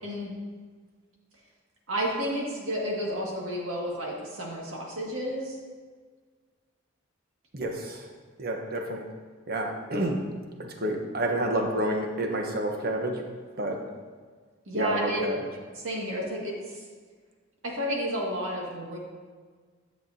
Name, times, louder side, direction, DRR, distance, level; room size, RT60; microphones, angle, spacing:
voice 1, 0.0-0.3 1.9-5.6 14.7-15.2 15.8-16.8 17.6-19.0, equal, 70° right, -3 dB, 1.9 m, -31 dB
voice 2, 7.5-8.1 8.4-9.1 9.5-10.2 10.6-13.2 13.6-13.8 14.7-15.4, right 1 dB, 45° right, 2 dB, 1.0 m, -29 dB
9.9 x 7.3 x 2.7 m, 1.5 s
head